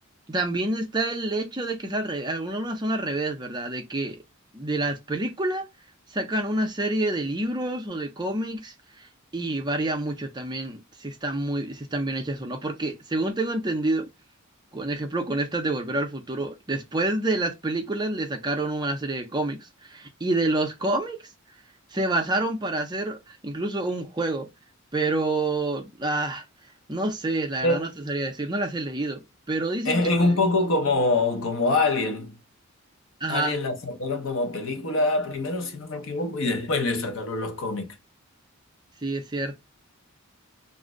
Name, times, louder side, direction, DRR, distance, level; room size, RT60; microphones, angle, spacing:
voice 1, 0.3-4.2 4.5-5.6 6.1-9.1 9.3-14.1 14.7-19.6 19.9-21.2 21.9-24.5 24.9-26.4 26.9-29.2 29.5-30.3 33.2-33.6 39.0-39.5, right 2 dB, 20° right, 0.5 m, -28 dB
voice 2, 29.8-32.4 33.3-38.0, left 2 dB, 65° left, 0.7 m, -25 dB
2.5 x 2.0 x 3.5 m
head